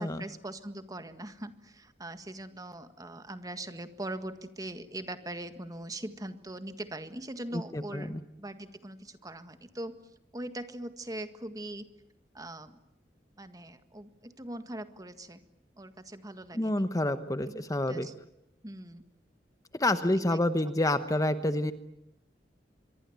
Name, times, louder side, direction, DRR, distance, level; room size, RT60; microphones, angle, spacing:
voice 1, 0.0-8.1 8.4-10.0 10.3-11.9 12.3-12.8 13.4-15.4 15.8-16.8 17.4-18.1 18.6-19.0 20.0-20.4, right 1 dB, 20° right, 10 dB, 1.7 m, -41 dB
voice 2, 7.5-8.2 16.5-18.1 19.7-21.7, left 1 dB, 20° left, 11 dB, 1.0 m, -28 dB
25.0 x 23.5 x 9.3 m, 0.81 s
head